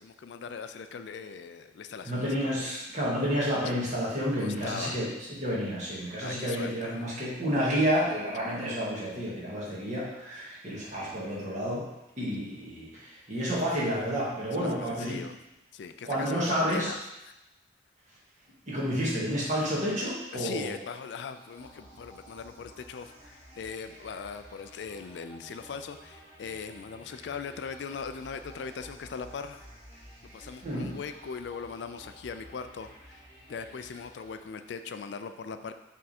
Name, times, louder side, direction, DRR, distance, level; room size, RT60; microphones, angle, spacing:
voice 1, 0.0-2.7 4.4-5.0 6.2-7.0 14.5-15.4 15.7-17.0 17.3-17.4 20.3-29.6 30.2-35.7, left 5 dB, 65° left, 9 dB, 0.4 m, -40 dB
voice 2, 2.0-11.8 12.2-15.2 16.0-16.9 18.7-20.7 30.6-30.9, equal, 40° right, -6 dB, 1.9 m, -30 dB
sound 1, 21.3-34.9, right 1 dB, 20° right, 2.1 m, -52 dB
6.5 x 3.6 x 4.3 m, 0.93 s
head